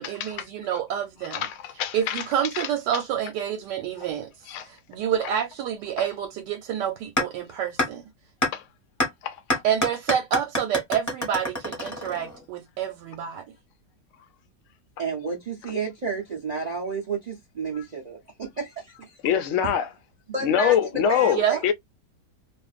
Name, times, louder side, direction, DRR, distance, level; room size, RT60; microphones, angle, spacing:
voice 1, 0.0-1.5 1.9-4.3 4.6-8.0 9.6-13.4 21.2-21.6, right 9 dB, 90° right, 1.2 m, -28 dB
voice 2, 1.3-2.2 2.5-2.7 4.5-4.7 6.0-6.1 8.5-8.6 9.2-9.6 17.7-17.8 19.2-19.9 20.4-21.7, left 8 dB, 75° left, 0.7 m, -24 dB
sound 1, 7.2-7.3 7.8-7.9 8.4-8.5 9.0-9.1 9.5-12.4, left 1 dB, 15° left, 0.8 m, -25 dB
voice 3, 15.0-19.2 20.3-21.7, right 3 dB, 65° right, 0.4 m, -31 dB
2.5 x 2.5 x 2.3 m
omnidirectional pair, 1.8 m